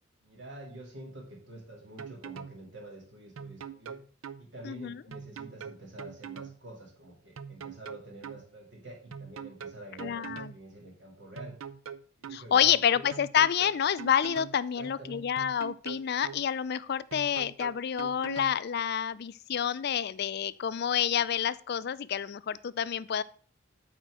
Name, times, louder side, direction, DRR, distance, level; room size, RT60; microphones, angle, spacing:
voice 1, 0.2-4.0 4.4-11.6 12.2-13.1 14.8-15.2, right 1 dB, 60° right, 1 dB, 2.6 m, -47 dB
sound 1, 2.0-2.6 3.4-4.4 5.1-6.6 7.4-8.4 9.1-10.6 11.4-12.4 13.1-14.6 15.4-16.4 17.1-18.6, right 7 dB, 80° right, 0.5 m, -42 dB
voice 2, 10.0-10.5 12.3-23.2, left 9 dB, 50° left, 17 dB, 0.4 m, -28 dB
8.9 x 4.5 x 6.2 m, 0.43 s
head